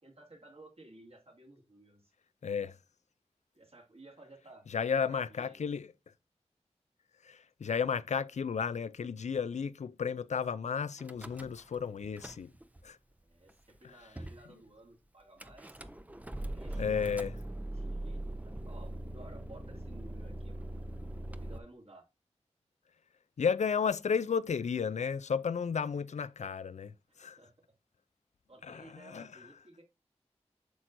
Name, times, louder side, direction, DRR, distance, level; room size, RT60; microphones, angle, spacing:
voice 1, 0.0-2.1 3.5-4.7 5.0-5.6 13.2-15.8 16.5-17.2 17.7-20.6 21.3-22.1 27.4-27.5 28.5-29.8, right 2 dB, 60° right, 2.3 m, -55 dB
voice 2, 2.4-2.8 4.7-5.9 7.2-12.5 12.8-13.0 16.8-17.3 23.4-27.4 28.6-29.4, left 6 dB, 85° left, 0.4 m, -33 dB
Car / Engine starting / Idling, 11.0-11.8 12.0-12.8 13.5-13.6 13.7-13.8 14.2-14.4 15.4-21.6, right 1 dB, 15° right, 0.6 m, -41 dB
8.2 x 6.0 x 2.6 m
wide cardioid pair, 75°, 12 cm